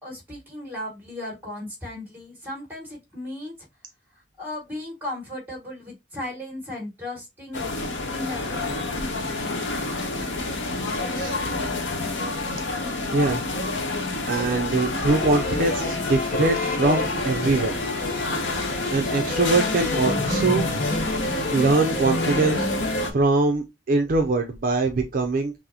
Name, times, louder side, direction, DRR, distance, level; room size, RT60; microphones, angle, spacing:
voice 1, 0.0-3.7 4.4-7.6 8.1-8.7, left 1 dB, 10° right, 2.0 m, -36 dB
sound 1, 7.5-23.1, left 2 dB, 85° left, 0.9 m, -28 dB
voice 2, 14.3-17.8 18.9-20.6 21.5-22.7 23.1-25.5, right 3 dB, 50° right, 0.5 m, -22 dB
sound 2, 15.1-23.1, left 2 dB, 45° left, 1.0 m, -29 dB
5.9 x 2.0 x 2.8 m
head